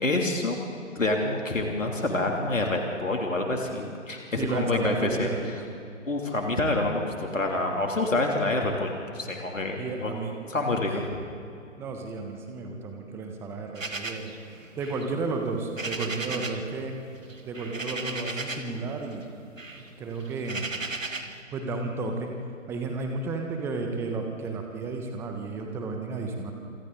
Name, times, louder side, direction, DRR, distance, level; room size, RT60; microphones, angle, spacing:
voice 1, 0.0-0.6 0.9-5.3 6.0-10.2 10.5-11.2, left 2 dB, 75° left, 1 dB, 3.0 m, -27 dB
voice 2, 4.4-5.6 9.8-10.3 11.8-14.3 14.8-16.9 17.4-19.2 19.7-20.7 21.5-22.3 22.7-26.5, right 3 dB, 5° right, 4 dB, 1.2 m, -32 dB
sound 1, 13.8-16.7 17.0-18.8 19.1-21.4, right 3 dB, 75° right, 1.9 m, -36 dB
27.0 x 25.5 x 4.0 m, 2.6 s
figure-of-eight pair, 140°, 39 cm